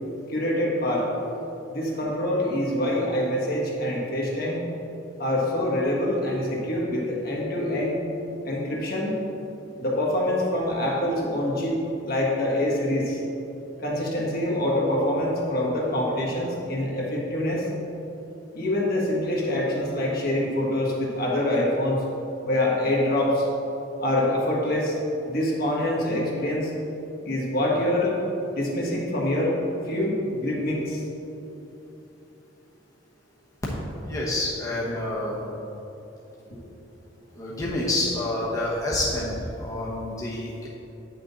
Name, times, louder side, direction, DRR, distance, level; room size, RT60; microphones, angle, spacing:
voice 1, 0.3-1.1 1.7-4.6 5.2-8.0 8.4-9.2 9.8-13.2 13.8-17.6 18.5-22.0 22.5-23.5 24.0-25.0 25.2-26.7 27.2-28.2 28.5-29.6 29.8-31.0 36.5-36.6, left 1 dB, 55° left, -3 dB, 1.6 m, -25 dB
voice 2, 34.0-35.4 37.3-40.7, left 1 dB, 20° left, -6 dB, 1.0 m, -28 dB
8.8 x 6.2 x 4.0 m, 3.0 s
head